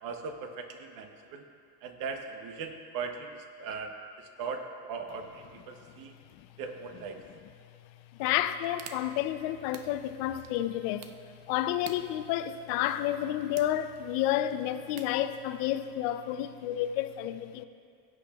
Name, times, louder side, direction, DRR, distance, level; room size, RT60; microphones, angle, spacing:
voice 1, 0.0-1.4 1.8-6.1 6.6-7.2, right 5 dB, 50° right, 0.9 m, -39 dB
voice 2, 8.2-11.1 11.5-17.6, left 12 dB, 80° left, 0.6 m, -30 dB
sound 1, 8.2-16.0, right 8 dB, 90° right, 0.7 m, -52 dB
17.0 x 8.6 x 2.3 m
cardioid pair, 175°, 42 cm